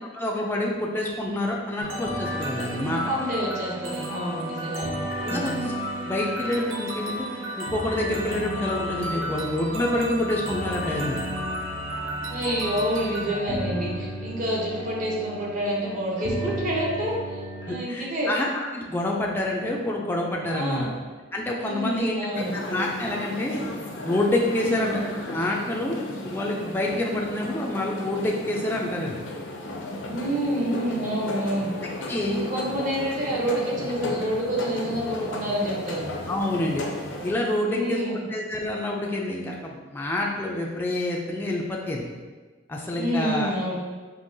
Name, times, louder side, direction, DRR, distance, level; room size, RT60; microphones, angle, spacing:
voice 1, 0.1-3.0 5.3-5.7 6.0-7.3 7.6-11.2 17.7-20.9 21.3-23.7 24.0-25.0 25.3-26.0 26.2-29.2 31.8-32.4 36.3-36.8 37.2-38.0 38.3-42.0 42.7-43.5, left 1 dB, 10° left, -2 dB, 0.4 m, -27 dB
sound 1, 1.8-17.8, equal, 80° right, 0.6 m, -32 dB
voice 2, 3.1-5.0 5.3-5.6 12.3-18.3 20.5-20.9 21.6-22.6 24.6-24.9 30.1-31.7 32.3-36.0 37.7-38.2 43.0-43.8, right 1 dB, 40° right, -3 dB, 0.9 m, -28 dB
sound 2, 22.3-37.3, left 1 dB, 65° left, 0.5 m, -35 dB
5.3 x 2.8 x 2.7 m, 1.4 s
head